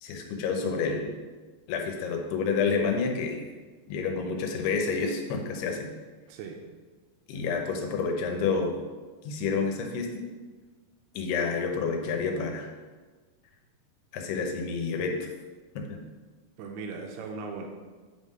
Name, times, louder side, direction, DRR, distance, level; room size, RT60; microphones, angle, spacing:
voice 1, 0.0-1.1 1.7-3.4 3.9-5.9 7.3-8.8 9.2-10.3 11.2-12.7 14.1-15.2 15.8-16.0, left 5 dB, 90° left, 3 dB, 2.9 m, -29 dB
voice 2, 6.3-6.6 16.6-17.7, right 4 dB, 85° right, 3 dB, 2.6 m, -38 dB
8.3 x 3.7 x 5.3 m, 1.4 s
omnidirectional pair, 4.6 m